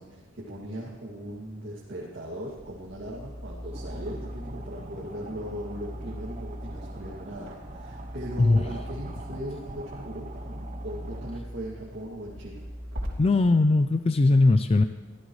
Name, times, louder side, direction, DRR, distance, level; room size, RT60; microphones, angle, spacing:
voice 1, 0.0-12.6, equal, 55° right, -5 dB, 2.4 m, -39 dB
sound 1, 2.5-13.1, equal, 75° right, 3.5 m, -40 dB
sound 2, 3.7-11.4, right 2 dB, 40° right, 0.9 m, -45 dB
voice 2, 13.2-14.8, left 2 dB, 30° left, 10 dB, 0.4 m, -20 dB
23.0 x 15.0 x 3.2 m, 1.2 s
head